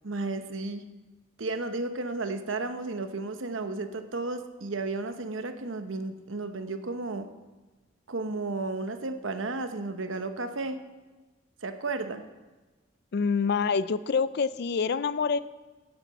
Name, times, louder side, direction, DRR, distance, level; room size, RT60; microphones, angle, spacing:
voice 1, 0.0-0.8 1.4-7.3 8.1-10.8 11.6-12.2, right 3 dB, 80° right, 8 dB, 0.9 m, -33 dB
voice 2, 13.1-15.4, left 5 dB, 55° left, 16 dB, 0.4 m, -26 dB
10.0 x 8.1 x 7.8 m, 1.2 s
head